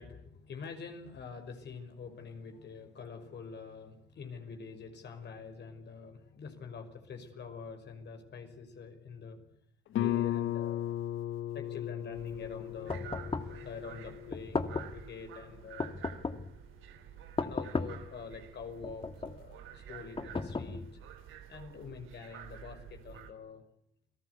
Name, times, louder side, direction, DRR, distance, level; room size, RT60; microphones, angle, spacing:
voice 1, 0.0-9.4 10.0-10.8 11.5-16.0 17.4-20.8 21.5-23.6, left 5 dB, 60° left, 5 dB, 5.8 m, -46 dB
Guitar, 9.9-15.4, left 12 dB, 75° left, 1.8 m, -36 dB
sound 1, 12.1-23.3, right 10 dB, 85° right, 3.3 m, -51 dB
sound 2, 12.9-13.6 14.3-15.0 15.8-16.6 17.4-18.1 18.8-19.4 20.2-21.1, left 3 dB, 25° left, 2.0 m, -35 dB
29.5 x 18.5 x 8.3 m, 0.71 s
cardioid pair, 90°, 20 cm